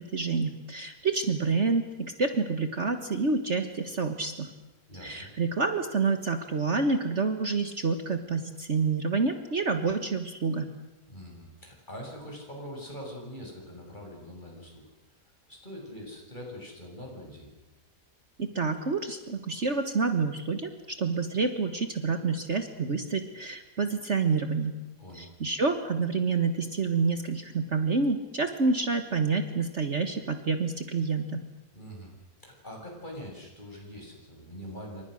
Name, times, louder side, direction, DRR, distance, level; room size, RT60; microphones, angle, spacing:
voice 1, 0.0-4.5 5.0-10.7 18.4-20.7 21.0-24.7 25.1-31.4, right 4 dB, 50° right, 7 dB, 1.7 m, -28 dB
voice 2, 4.9-5.3 11.1-14.8 15.5-17.5 25.0-25.3 31.7-32.1 32.4-35.0, equal, 30° left, 0 dB, 7.0 m, -43 dB
28.5 x 25.5 x 6.5 m, 1.0 s
omnidirectional pair, 1.7 m